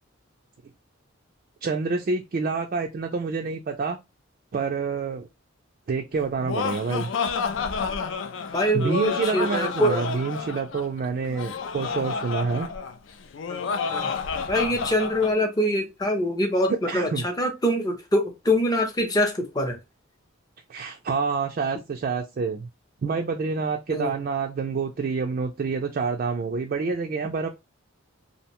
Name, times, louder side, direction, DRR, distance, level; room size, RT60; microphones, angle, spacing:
voice 1, 1.6-4.0 4.5-5.3 5.9-7.1 8.7-12.7 16.7-17.2 20.7-22.7 23.0-27.5, right 4 dB, 45° right, 0.3 m, -27 dB
Laughter, 6.2-15.3, left 5 dB, 60° left, 0.4 m, -30 dB
voice 2, 8.5-10.1 13.5-13.6 13.9-14.1 14.5-19.8 23.9-24.2, equal, 20° left, 0.6 m, -24 dB
2.6 x 2.1 x 2.9 m
head